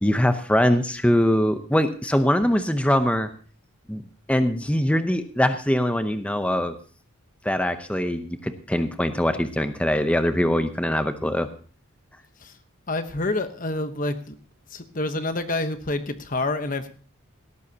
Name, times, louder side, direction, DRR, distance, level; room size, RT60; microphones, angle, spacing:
voice 1, 0.0-3.3 3.9-4.0 4.3-6.8 7.4-11.5, equal, 5° left, 9 dB, 0.7 m, -22 dB
voice 2, 12.9-14.3 14.7-16.9, left 2 dB, 40° left, 9 dB, 1.0 m, -28 dB
17.0 x 14.0 x 2.8 m, 0.40 s
head